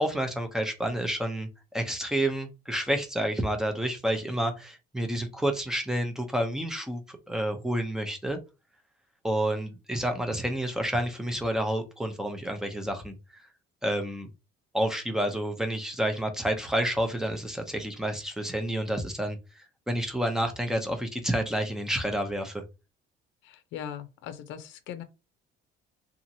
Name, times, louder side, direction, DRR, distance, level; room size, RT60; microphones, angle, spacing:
voice 1, 0.0-8.4 9.2-13.4 13.8-14.3 14.7-22.6, right 1 dB, 5° right, 0.5 m, -29 dB
voice 2, 23.4-25.0, left 9 dB, 70° left, 0.6 m, -40 dB
2.8 x 2.5 x 2.7 m
cardioid pair, 140°, 20 cm